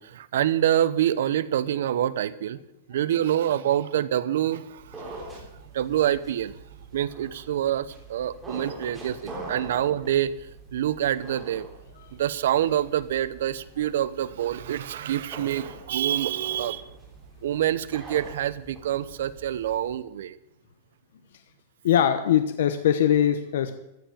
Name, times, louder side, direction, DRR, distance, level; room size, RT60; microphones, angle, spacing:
voice 1, 0.0-2.6 2.9-5.3 5.7-6.6 6.9-11.7 12.1-16.9 17.4-20.4, right 11 dB, 70° right, 16 dB, 0.7 m, -26 dB
sound 1, 4.7-20.0, right 2 dB, 10° right, 3.6 m, -44 dB
voice 2, 21.8-23.8, left 10 dB, 70° left, 9 dB, 1.0 m, -21 dB
14.5 x 7.2 x 9.2 m, 0.86 s
supercardioid pair, 175°, 0 cm